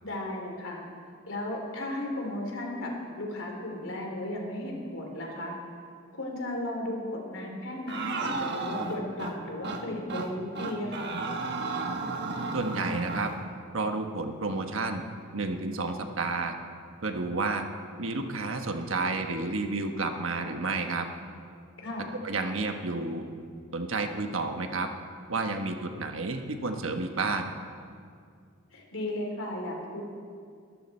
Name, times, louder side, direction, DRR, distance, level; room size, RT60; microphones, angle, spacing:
voice 1, 0.0-0.8 1.2-2.9 3.2-5.6 6.1-11.1 21.8-22.1 28.7-30.0, left 1 dB, 70° left, 0 dB, 3.4 m, -35 dB
sound 1, 7.9-9.3 9.6-9.8 10.1-10.3 10.6-13.3, right 3 dB, 55° right, 1.3 m, -33 dB
voice 2, 12.5-13.3 13.7-15.0 15.3-16.6 17.0-17.7 18.0-21.1 22.2-23.2 23.7-24.9 25.3-27.5, right 3 dB, 75° right, 5 dB, 1.2 m, -31 dB
22.0 x 13.5 x 4.4 m, 2.2 s
head